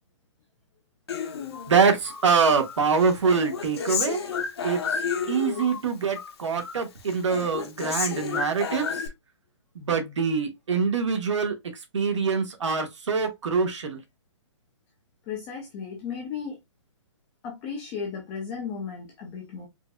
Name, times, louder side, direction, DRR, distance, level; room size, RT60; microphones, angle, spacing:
Human voice, 1.1-2.3 2.6-5.8 6.1-6.8 7.1-9.1, left 6 dB, 55° left, 0.8 m, -31 dB
voice 1, 1.7-4.2 4.6-4.8 5.3-8.9 9.8-11.5 11.9-14.0, right 5 dB, 70° right, 1.3 m, -24 dB
voice 2, 15.3-16.6 17.4-19.7, left 6 dB, 10° left, 0.3 m, -35 dB
4.5 x 2.6 x 2.2 m
hypercardioid pair, 170°, 16 cm